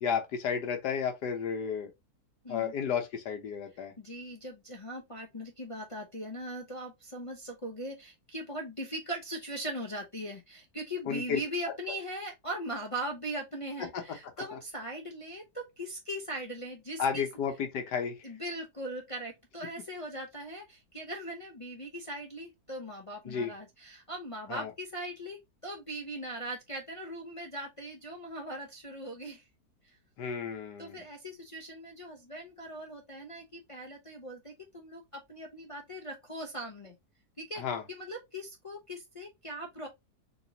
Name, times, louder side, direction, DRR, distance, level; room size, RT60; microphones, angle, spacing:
voice 1, 0.0-1.9 2.5-3.9 11.1-11.4 13.9-14.0 14.5-14.6 17.0-18.3 23.3-23.5 24.5-24.7 30.2-31.0 37.6-37.8, left 6 dB, 85° left, 1.4 m, -32 dB
voice 2, 4.0-17.3 18.2-29.4 29.8-30.0 30.8-37.0 37.4-39.9, right 1 dB, 40° left, 0.4 m, -40 dB
4.1 x 3.0 x 2.7 m
omnidirectional pair, 1.7 m